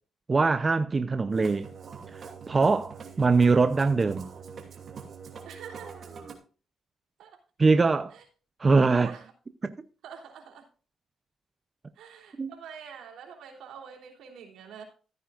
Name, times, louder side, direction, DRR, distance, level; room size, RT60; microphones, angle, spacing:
voice 1, 0.3-1.7 2.1-4.3 7.6-8.1 8.6-9.1 9.6-9.7 12.4-12.5, right 4 dB, 30° right, 0.7 m, -23 dB
Musical instrument, 1.3-6.3, right 6 dB, 50° right, 2.7 m, -44 dB
voice 2, 5.4-6.0 7.2-7.4 8.1-8.2 8.9-9.3 10.0-10.7 12.0-14.8, right 7 dB, 80° right, 3.3 m, -46 dB
14.5 x 9.4 x 2.5 m
cardioid pair, 90°, 0 cm